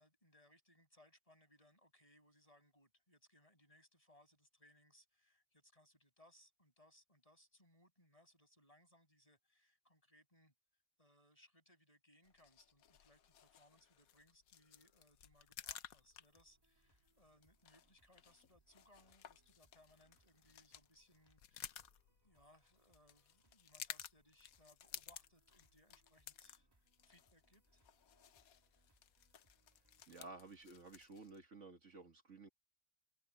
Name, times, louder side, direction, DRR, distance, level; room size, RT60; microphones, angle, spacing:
voice 1, 0.0-10.5 11.0-21.9 22.2-27.8, left 1 dB, 25° left, 7.7 m, -69 dB
sound 1, 12.2-31.4, left 10 dB, 80° left, 1.3 m, -56 dB
sound 2, 16.0-30.1, right 1 dB, 15° right, 2.6 m, -78 dB
voice 2, 30.1-32.5, right 3 dB, 55° right, 2.0 m, -54 dB
omnidirectional pair, 1.5 m